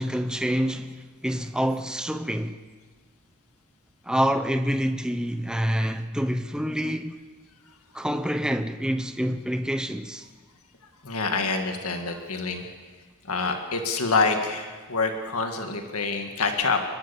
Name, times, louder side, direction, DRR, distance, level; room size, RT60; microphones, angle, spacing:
voice 1, 0.0-2.6 4.1-7.2 7.9-10.3, equal, 5° right, 0.7 m, -27 dB
voice 2, 11.0-12.6 13.2-16.8, left 4 dB, 80° left, 1.9 m, -26 dB
29.5 x 12.5 x 7.1 m
head